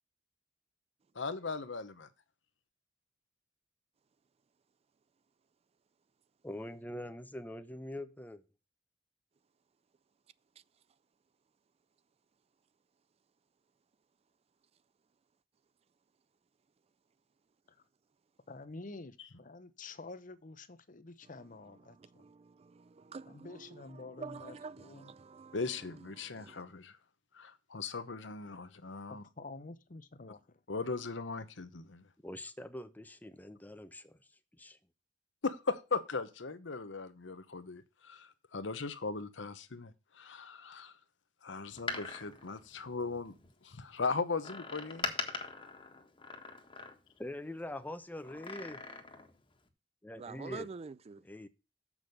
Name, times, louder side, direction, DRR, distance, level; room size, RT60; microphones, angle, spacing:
voice 1, 1.1-2.1 25.5-27.0 27.3-29.2 30.7-32.0 35.4-40.9 41.4-43.3 43.6-45.1, left 4 dB, 80° left, 1.0 m, -38 dB
voice 2, 6.4-8.4 32.2-34.2 34.6-34.8 47.2-48.8 50.0-50.7 51.2-51.5, left 1 dB, 10° left, 0.7 m, -43 dB
voice 3, 18.5-22.3 23.3-25.1 28.5-28.6 29.1-30.6, left 3 dB, 45° left, 0.8 m, -49 dB
voice 4, 21.8-25.6 26.2-26.6 50.2-51.2, right 4 dB, 35° right, 0.4 m, -48 dB
Door, 41.7-43.5 44.4-47.3 48.2-49.4 49.7-49.8, left 4 dB, 30° left, 1.5 m, -42 dB
7.2 x 6.2 x 6.5 m
head